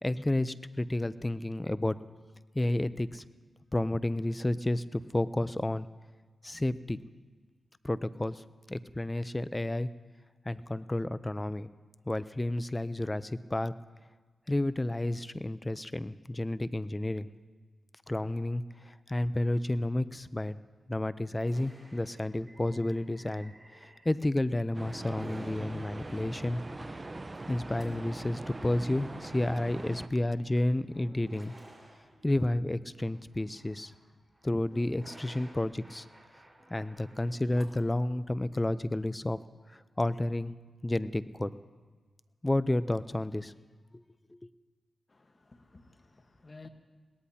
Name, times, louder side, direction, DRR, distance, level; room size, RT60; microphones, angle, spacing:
voice 1, 0.0-2.0 2.5-3.2 3.7-5.9 6.4-7.0 7.8-9.9 10.5-11.7 12.1-13.7 14.5-17.3 18.1-20.6 20.9-26.6 27.5-31.5 32.2-33.9 34.4-36.1 36.7-39.4 39.7-40.5 40.8-41.5 42.4-43.5 43.9-44.0 44.3-44.4, left 1 dB, 25° left, 15 dB, 0.6 m, -31 dB
sound 1, 21.4-24.4 24.8-37.9, right 1 dB, 15° right, 4.6 m, -55 dB
sound 2, 24.7-30.1, right 2 dB, 35° right, 0.8 m, -41 dB
voice 2, 45.1-46.7, left 3 dB, 45° left, 7 dB, 1.3 m, -53 dB
21.5 x 18.0 x 2.8 m, 1.4 s
cardioid pair, 45°, 0 cm